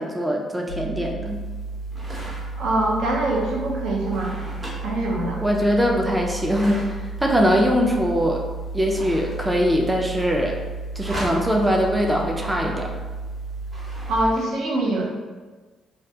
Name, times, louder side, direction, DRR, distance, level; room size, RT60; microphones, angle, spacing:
voice 1, 0.0-1.4 5.4-8.4 8.7-10.5 11.0-12.9, equal, 10° right, 0 dB, 0.3 m, -22 dB
sound 1, 0.7-14.2, right 3 dB, 85° left, 0.4 m, -33 dB
sound 2, 1.3-14.4, equal, 30° right, 0.8 m, -41 dB
voice 2, 2.6-4.4 4.8-5.4 14.1-15.0, right 2 dB, 75° right, -2 dB, 0.5 m, -23 dB
2.2 x 2.2 x 2.7 m, 1.3 s
cardioid pair, 90°, 0 cm